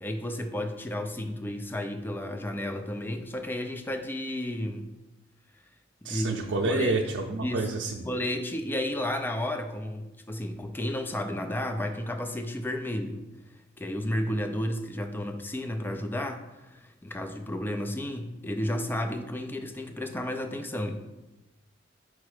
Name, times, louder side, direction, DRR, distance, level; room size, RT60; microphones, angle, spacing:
voice 1, 0.0-4.9 6.0-6.4 6.6-7.0 7.4-7.7 8.1-13.2 13.8-21.0, left 1 dB, 10° left, 6 dB, 0.4 m, -32 dB
voice 2, 6.0-8.1, right 3 dB, 90° right, 0 dB, 0.5 m, -28 dB
4.9 x 4.2 x 4.8 m, 1.0 s
head